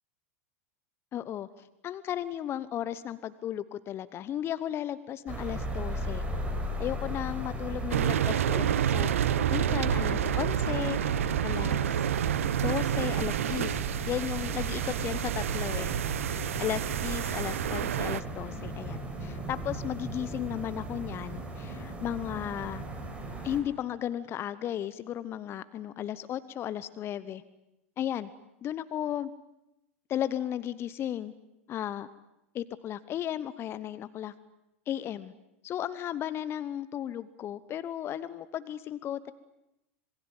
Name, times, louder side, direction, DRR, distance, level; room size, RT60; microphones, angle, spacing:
voice 1, 1.1-6.2 6.8-11.0 11.4-12.0 12.6-15.9 16.6-22.8 23.4-27.4 28.0-28.3 28.6-29.3 30.1-31.3 31.7-32.1 32.5-34.3 34.9-35.3 35.6-39.3, left 11 dB, 35° left, 16 dB, 1.0 m, -35 dB
sound 1, 5.3-23.6, right 1 dB, 15° right, 5.4 m, -37 dB
sound 2, 7.9-18.2, right 10 dB, 70° right, 0.9 m, -29 dB
26.5 x 22.0 x 8.9 m, 0.88 s
figure-of-eight pair, 90°, 7 cm